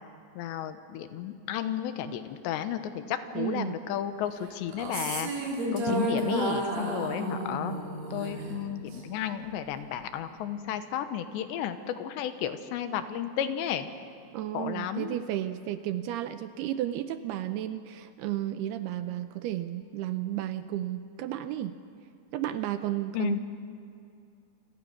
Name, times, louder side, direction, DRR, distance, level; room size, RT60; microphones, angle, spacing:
voice 1, 0.4-7.7 8.1-13.9 14.5-15.2 23.1-23.4, left 10 dB, 85° left, 10 dB, 3.3 m, -33 dB
voice 2, 3.3-3.8 5.9-6.4 14.3-21.7 22.3-23.4, right 13 dB, 75° right, 10 dB, 2.5 m, -33 dB
sound 1, 4.7-9.1, right 1 dB, 55° right, 4.6 m, -32 dB
28.5 x 25.5 x 6.0 m, 2.5 s
omnidirectional pair, 5.1 m